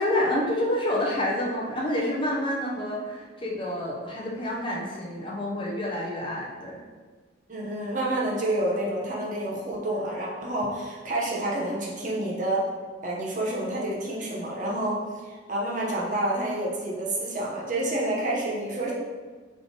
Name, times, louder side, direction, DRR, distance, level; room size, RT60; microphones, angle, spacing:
voice 1, 0.0-6.8, left 1 dB, 25° left, -3 dB, 0.6 m, -28 dB
voice 2, 7.5-12.6 13.0-15.0 15.5-18.9, right 1 dB, 40° right, -4 dB, 0.8 m, -28 dB
3.7 x 3.2 x 3.9 m, 1.4 s
head